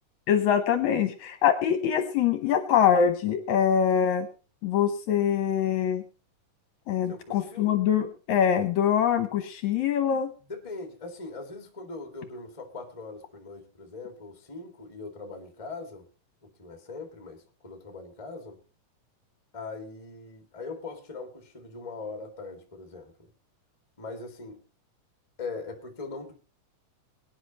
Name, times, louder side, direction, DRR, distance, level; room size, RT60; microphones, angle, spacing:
voice 1, 0.3-4.3 4.6-6.0 6.9-10.3, left 8 dB, 70° left, 2.0 m, -24 dB
voice 2, 7.1-7.8 10.4-16.0 16.4-18.6 19.5-23.3 24.0-24.6 25.4-26.3, left 3 dB, 15° left, 1.5 m, -41 dB
22.0 x 10.0 x 3.0 m
omnidirectional pair, 3.8 m